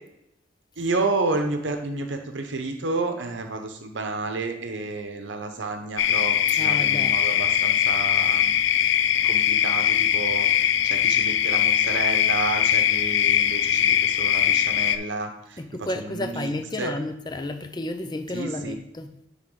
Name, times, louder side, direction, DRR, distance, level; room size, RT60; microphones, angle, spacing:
voice 1, 0.8-8.6 9.2-16.5 16.8-16.9 18.3-18.8, right 3 dB, 80° right, 0.8 m, -30 dB
sound 1, 6.0-15.0, left 10 dB, 75° left, 0.4 m, -21 dB
voice 2, 6.6-7.1 15.6-19.1, left 1 dB, 25° left, 0.6 m, -31 dB
10.0 x 3.7 x 3.8 m
head